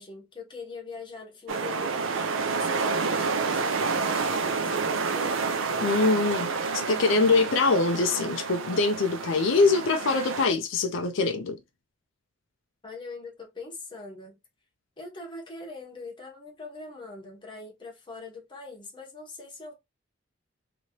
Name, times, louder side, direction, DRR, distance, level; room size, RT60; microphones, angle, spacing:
voice 1, 0.0-5.5 12.8-14.4 15.0-19.7, left 3 dB, 25° left, 1.2 m, -42 dB
sound 1, 1.5-10.5, right 4 dB, 85° right, 0.6 m, -29 dB
voice 2, 5.8-11.6, left 3 dB, 75° left, 0.5 m, -24 dB
3.0 x 2.9 x 2.8 m
head